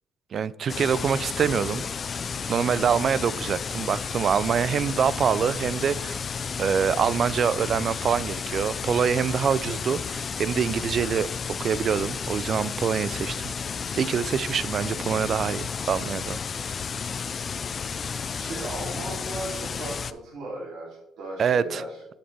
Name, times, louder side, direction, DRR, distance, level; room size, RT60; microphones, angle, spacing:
voice 1, 0.3-1.8 2.5-6.2 6.6-11.3 11.6-13.5 13.9-16.4 21.4-21.8, right 7 dB, 45° right, 18 dB, 0.3 m, -25 dB
sound 1, 0.7-20.1, left 6 dB, 40° left, 0.3 m, -32 dB
voice 2, 18.4-22.0, right 2 dB, 70° right, -5 dB, 2.9 m, -36 dB
7.5 x 6.5 x 3.4 m, 0.87 s
cardioid pair, 110°, 0 cm